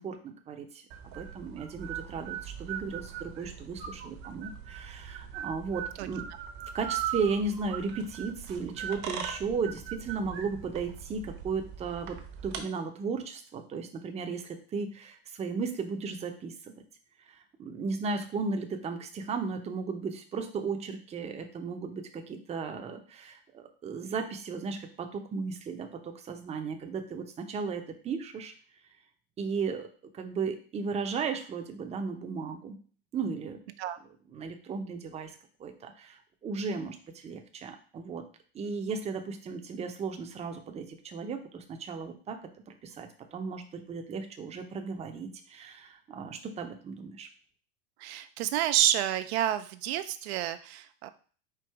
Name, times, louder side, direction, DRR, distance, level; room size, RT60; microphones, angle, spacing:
voice 1, 0.0-6.3 6.7-12.2 12.4-16.7 17.3-28.5 29.4-29.9 30.1-32.8 33.1-33.6 34.3-38.2 38.5-47.3, right 4 dB, 20° right, 5 dB, 0.6 m, -35 dB
sound 1, 0.9-12.6, right 9 dB, 55° right, 0.9 m, -40 dB
voice 2, 48.0-51.1, right 12 dB, 70° right, 11 dB, 0.5 m, -29 dB
4.6 x 2.5 x 4.6 m, 0.41 s
supercardioid pair, 125°, 33 cm